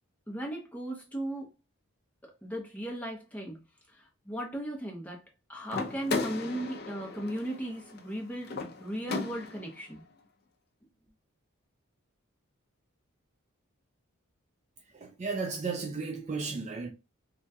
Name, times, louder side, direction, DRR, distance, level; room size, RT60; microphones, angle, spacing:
voice 1, 0.3-1.5 2.2-3.6 3.9-5.2 5.5-10.0, right 1 dB, 5° left, 0.7 m, -37 dB
sound 1, 5.7-9.8, left 3 dB, 45° left, 0.4 m, -36 dB
voice 2, 14.9-16.9, right 4 dB, 30° right, 0.3 m, -34 dB
3.4 x 2.2 x 2.7 m
head